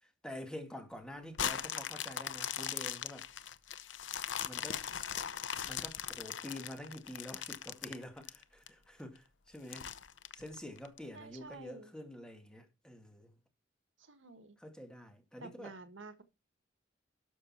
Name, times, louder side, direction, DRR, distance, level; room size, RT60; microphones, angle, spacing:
voice 1, 0.0-3.3 4.5-4.9 5.7-9.9 10.3-13.4 14.6-15.7, left 1 dB, 5° left, 2.1 m, -47 dB
sound 1, 1.3-8.7 9.2-9.3 9.7-11.0 11.5-11.6, left 9 dB, 70° left, 0.8 m, -39 dB
voice 2, 11.1-11.9 14.0-14.6 15.4-16.2, right 3 dB, 85° right, 1.5 m, -50 dB
12.5 x 6.5 x 4.3 m
head